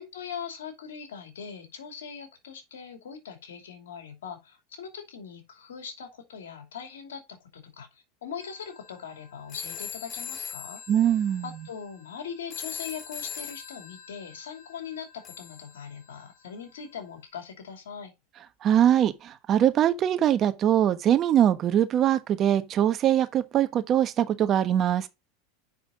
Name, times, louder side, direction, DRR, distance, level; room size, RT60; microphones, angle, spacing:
voice 1, 0.0-10.8 11.4-18.1, left 7 dB, 90° left, 2.6 m, -41 dB
sound 1, 8.4-16.5, left 7 dB, 30° left, 2.2 m, -42 dB
voice 2, 10.9-11.5 18.6-25.1, right 10 dB, 40° right, 1.2 m, -22 dB
7.1 x 5.9 x 3.7 m
supercardioid pair, 115°, 0 cm